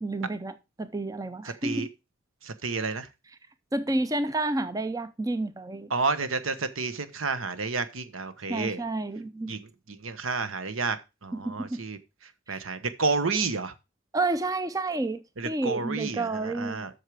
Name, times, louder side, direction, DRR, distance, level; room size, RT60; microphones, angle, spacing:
voice 1, 0.0-1.9 3.7-5.9 8.5-9.5 11.3-11.8 12.5-12.6 14.1-16.9, right 2 dB, 15° right, 0.5 m, -30 dB
voice 2, 2.4-3.1 5.9-8.8 9.5-11.0 11.2-12.0 12.5-13.7 15.4-16.9, right 4 dB, 80° right, 1.1 m, -30 dB
7.9 x 6.6 x 4.9 m
head